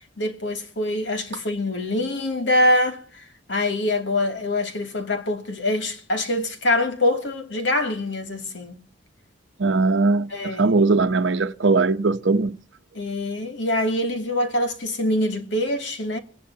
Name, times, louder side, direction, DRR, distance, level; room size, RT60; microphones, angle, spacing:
voice 1, 0.0-8.7 10.3-10.7 12.9-16.2, left 1 dB, 70° left, 2.6 m, -24 dB
voice 2, 9.6-12.6, right 3 dB, 75° right, 0.9 m, -20 dB
24.5 x 18.5 x 2.9 m
head